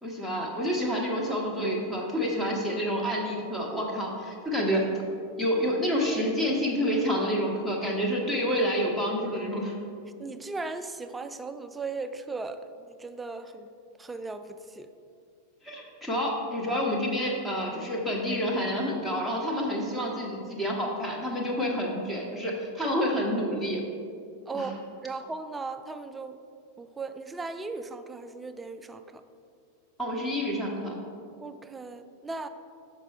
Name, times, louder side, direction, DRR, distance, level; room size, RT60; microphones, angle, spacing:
voice 1, 0.0-4.8 5.4-9.7 15.6-23.8 24.5-24.7 30.0-30.9, equal, 5° left, -2 dB, 1.2 m, -28 dB
voice 2, 10.2-12.6 13.0-13.7 14.0-14.9 24.5-24.7 25.0-26.4 26.8-29.2 31.4-32.5, right 3 dB, 10° right, 9 dB, 0.3 m, -37 dB
6.6 x 4.4 x 4.7 m, 2.4 s
figure-of-eight pair, 90°, 0 cm